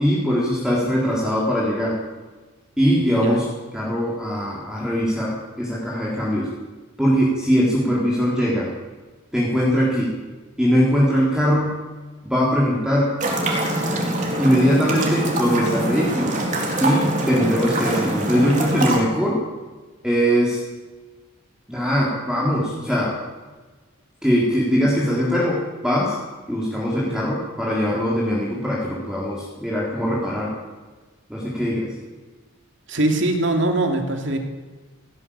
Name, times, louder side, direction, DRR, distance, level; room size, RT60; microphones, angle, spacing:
voice 1, 0.0-2.0 2.8-3.4 3.7-6.5 7.0-8.7 9.3-10.2 10.6-11.8 12.2-13.1 14.0-16.4 16.8-19.4 20.0-20.6 21.7-23.1 24.2-26.2 26.5-30.5 31.3-31.9, equal, 5° right, -5 dB, 4.0 m, -21 dB
voice 2, 3.1-3.5 31.6-31.7 32.9-34.4, right 1 dB, 60° right, 4 dB, 2.8 m, -22 dB
sound 1, 13.2-19.0, right 1 dB, 35° right, 4.1 m, -24 dB
18.0 x 16.5 x 8.9 m, 1.3 s
head